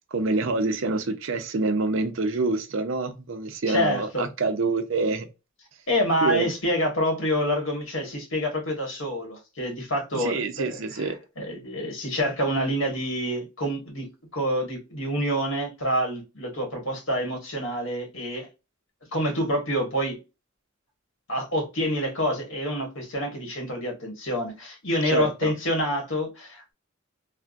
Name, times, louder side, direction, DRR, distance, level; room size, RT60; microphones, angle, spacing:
voice 1, 0.1-5.3 6.2-6.5 10.1-11.2 25.1-25.5, right 3 dB, 70° right, 0.6 m, -26 dB
voice 2, 3.7-4.3 5.9-14.1 14.3-18.5 19.1-20.2 21.3-26.7, equal, 70° left, 1.5 m, -27 dB
3.4 x 2.1 x 2.5 m
head